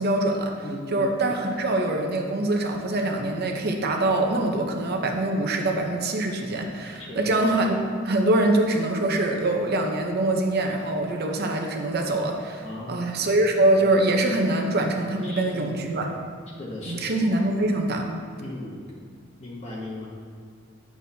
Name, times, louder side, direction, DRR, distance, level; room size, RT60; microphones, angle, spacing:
voice 1, 0.0-0.6 0.9-16.1 16.9-18.1, right 2 dB, 55° right, 3 dB, 0.8 m, -24 dB
voice 2, 0.6-1.0 7.0-7.3 12.6-13.4 15.2-15.9 16.6-17.2 18.4-18.8 19.4-20.1, left 2 dB, 35° left, -5 dB, 1.0 m, -37 dB
9.3 x 6.0 x 2.8 m, 2.1 s
head